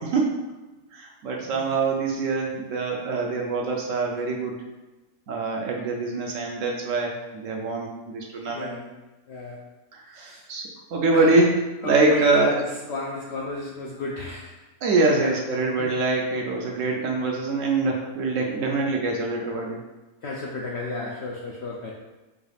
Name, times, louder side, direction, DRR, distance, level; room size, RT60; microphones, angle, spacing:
voice 1, 0.9-4.6 5.3-7.1 7.4-8.7 9.9-10.6 10.9-12.6 14.8-19.8, right 3 dB, 65° right, 0 dB, 0.8 m, -24 dB
voice 2, 8.5-8.9 9.3-9.6 10.3-10.4 11.1-11.4 11.8-14.6 15.1-15.3 15.8-15.9 20.2-22.0, left 2 dB, 70° left, -3 dB, 0.6 m, -32 dB
4.7 x 2.3 x 3.3 m, 1.1 s
omnidirectional pair, 1.6 m